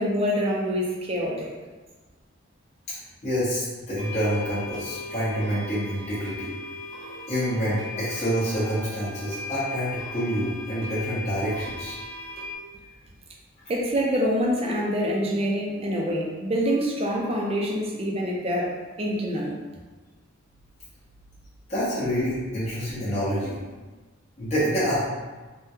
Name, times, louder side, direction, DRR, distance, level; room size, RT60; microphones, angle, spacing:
voice 1, 0.0-1.5 13.7-18.7 19.0-19.6, equal, 30° right, -2 dB, 0.5 m, -26 dB
voice 2, 3.2-6.5 7.3-12.0 21.7-23.6 24.4-25.0, equal, 35° left, -11 dB, 0.9 m, -27 dB
sound 1, 4.0-12.6, left 3 dB, 65° right, 1.0 m, -38 dB
3.5 x 2.2 x 2.7 m, 1.3 s
head